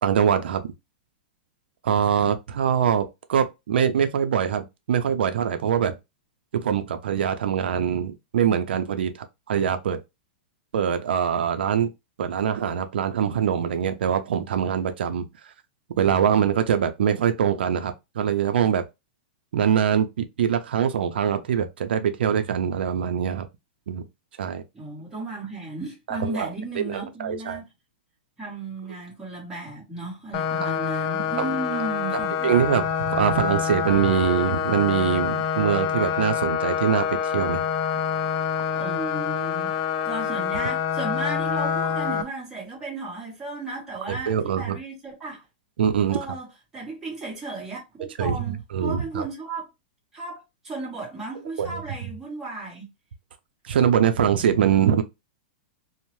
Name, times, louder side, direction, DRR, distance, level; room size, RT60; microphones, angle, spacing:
voice 1, 0.0-0.7 1.8-5.9 6.5-10.0 10.7-11.9 12.2-15.3 16.0-18.8 19.5-23.5 23.9-24.0 24.4-24.6 26.1-26.5 26.8-27.6 30.6-30.7 31.4-31.5 32.4-37.6 44.1-44.8 45.8-46.2 48.2-49.3 51.6-51.8 53.6-55.0, right 8 dB, 90° right, 0.4 m, -23 dB
voice 2, 24.7-27.6 28.4-32.5 38.7-39.7 40.0-45.4 46.1-46.5 46.7-49.7 50.1-52.8, right 2 dB, 10° right, 1.2 m, -34 dB
sound 1, 30.3-42.2, left 8 dB, 30° left, 0.4 m, -26 dB
2.6 x 2.0 x 3.0 m
supercardioid pair, 175°, 5 cm